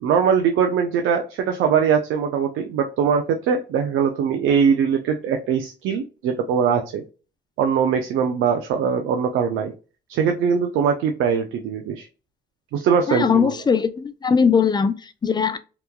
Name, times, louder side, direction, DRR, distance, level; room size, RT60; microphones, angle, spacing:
voice 1, 0.0-7.0 7.6-9.7 10.1-12.1 12.7-13.6, right 7 dB, 80° right, 0.4 m, -21 dB
voice 2, 13.1-15.6, left 6 dB, 20° left, 0.3 m, -20 dB
2.9 x 2.2 x 2.2 m
cardioid pair, 90°, 20 cm